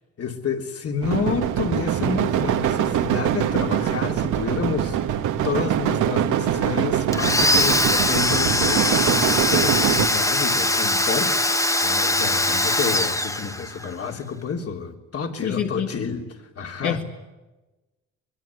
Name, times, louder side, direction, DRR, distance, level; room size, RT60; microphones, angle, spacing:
voice 1, 0.2-16.3 16.6-17.0, left 5 dB, 50° left, 4 dB, 3.6 m, -29 dB
sound 1, 1.0-10.1, right 10 dB, 85° right, 1.8 m, -23 dB
Domestic sounds home sounds, 7.1-13.9, left 1 dB, 10° left, 1.4 m, -21 dB
voice 2, 15.4-15.9 16.8-17.0, left 8 dB, 75° left, 2 dB, 2.5 m, -26 dB
24.0 x 22.5 x 9.8 m, 1.1 s
cardioid pair, 90°, 30 cm